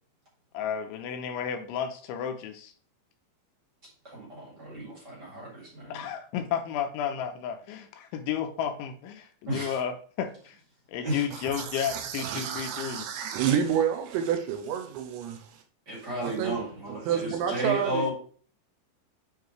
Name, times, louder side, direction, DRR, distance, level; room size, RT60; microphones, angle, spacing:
voice 1, 0.5-2.7 5.9-10.6 10.9-13.1, left 8 dB, 80° left, 3.3 m, -32 dB
voice 2, 4.0-6.1 9.4-9.7 11.0-11.2 15.9-18.1, right 1 dB, 25° right, 3.2 m, -33 dB
voice 3, 11.3-15.6 16.2-16.6 16.9-18.1, right 8 dB, 80° right, 2.9 m, -29 dB
10.0 x 4.9 x 3.2 m
omnidirectional pair, 5.4 m